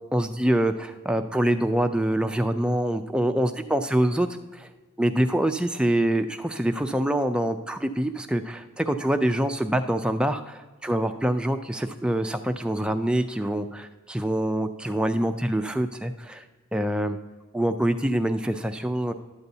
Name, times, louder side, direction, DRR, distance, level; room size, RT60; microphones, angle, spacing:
voice 1, 0.1-4.7 5.0-16.4 16.7-17.2 17.5-19.1, right 1 dB, 5° right, 7 dB, 0.3 m, -25 dB
12.0 x 7.9 x 2.7 m, 1.2 s
head